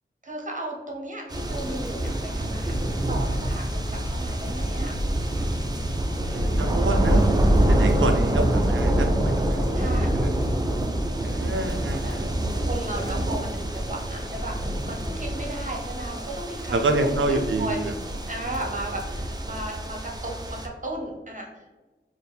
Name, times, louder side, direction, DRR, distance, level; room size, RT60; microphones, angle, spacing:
voice 1, 0.2-4.9 5.6-6.0 9.7-10.1 11.3-11.6 12.0-12.2 12.5-17.9 18.2-21.7, right 1 dB, 40° right, -1 dB, 0.9 m, -35 dB
sound 1, 1.3-20.7, right 1 dB, 20° right, 0.5 m, -26 dB
voice 2, 6.3-7.2 7.7-9.6 11.2-12.5 16.7-17.9, right 2 dB, 70° right, 6 dB, 0.5 m, -27 dB
4.4 x 2.1 x 3.4 m, 1.2 s
wide cardioid pair, 50°, 21 cm